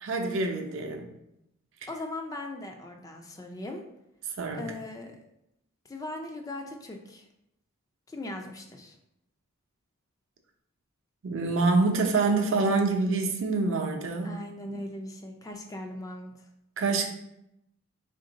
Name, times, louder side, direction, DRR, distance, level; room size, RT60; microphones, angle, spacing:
voice 1, 0.0-1.1 4.4-4.7 11.2-14.3 16.8-17.1, right 3 dB, 60° right, 3 dB, 0.5 m, -26 dB
voice 2, 1.9-3.8 4.5-5.2 5.9-7.3 8.1-9.0 14.2-16.3, left 2 dB, 15° left, 3 dB, 0.3 m, -39 dB
3.6 x 2.6 x 3.8 m, 0.83 s
head